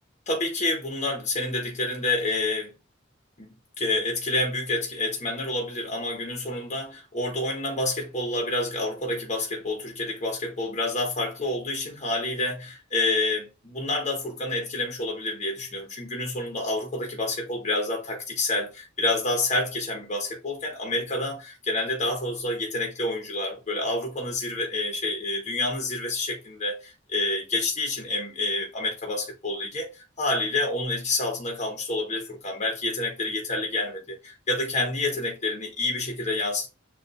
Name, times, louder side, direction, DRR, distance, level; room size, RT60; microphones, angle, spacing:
voice 1, 0.3-2.7 3.4-29.9 30.2-36.7, left 2 dB, 35° left, 0.9 m, -28 dB
6.6 x 2.4 x 2.3 m
head